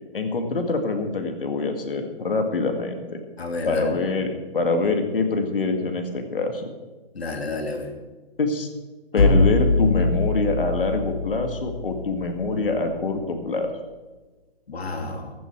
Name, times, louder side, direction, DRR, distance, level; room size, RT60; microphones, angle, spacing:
voice 1, 0.1-3.2 3.6-6.7 8.4-8.7 9.1-13.7, left 3 dB, 60° left, 6 dB, 2.1 m, -25 dB
voice 2, 3.4-4.0 7.1-7.9 14.7-15.3, left 3 dB, 85° left, 4 dB, 2.7 m, -30 dB
sound 1, 9.2-13.0, left 2 dB, 35° left, 1.6 m, -23 dB
16.0 x 11.0 x 4.7 m, 1.3 s
hypercardioid pair, 175°, 31 cm